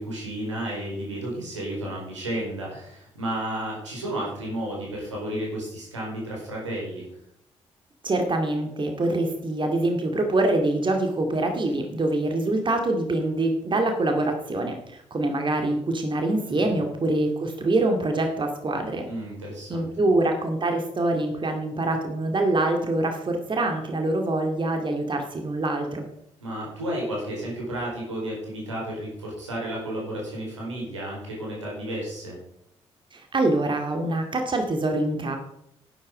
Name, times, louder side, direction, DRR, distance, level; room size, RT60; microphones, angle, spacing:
voice 1, 0.0-7.1 16.5-16.7 19.1-19.9 26.4-32.4, right 1 dB, 80° right, -3 dB, 4.4 m, -32 dB
voice 2, 8.0-19.1 19.7-26.1 33.1-35.4, right 2 dB, 30° right, 4 dB, 2.3 m, -25 dB
11.5 x 11.0 x 5.1 m, 0.77 s
figure-of-eight pair, 40°, 15 cm